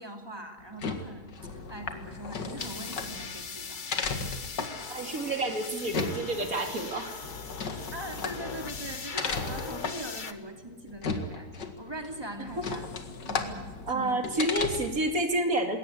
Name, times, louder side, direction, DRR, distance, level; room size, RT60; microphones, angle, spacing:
voice 1, 0.0-3.8 7.9-12.9 13.3-14.4, right 1 dB, 15° right, 4 dB, 2.8 m, -42 dB
sound 1, 0.6-15.1, left 4 dB, 85° left, 2.5 m, -36 dB
sound 2, 2.6-10.3, left 5 dB, 35° left, 1.1 m, -40 dB
voice 2, 4.9-7.1 13.9-15.8, right 1 dB, 55° right, 5 dB, 3.1 m, -29 dB
21.0 x 18.0 x 9.5 m, 1.3 s
omnidirectional pair, 1.8 m